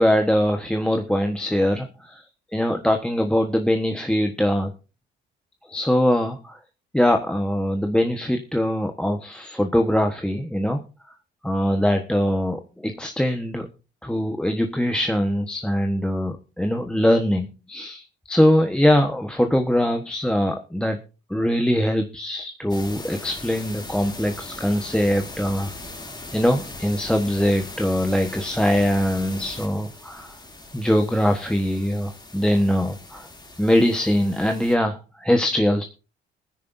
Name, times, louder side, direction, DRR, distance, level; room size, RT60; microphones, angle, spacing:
voice 1, 0.0-1.9 2.5-4.7 5.7-6.6 6.9-10.8 11.4-13.7 14.0-21.0 21.3-25.7 26.3-30.3 30.7-33.3 33.6-35.8, equal, 5° left, 5 dB, 1.2 m, -22 dB
sound 1, 22.7-34.8, left 2 dB, 20° left, 2.8 m, -39 dB
23.0 x 10.0 x 2.7 m, 0.32 s
cardioid pair, 90°, 20 cm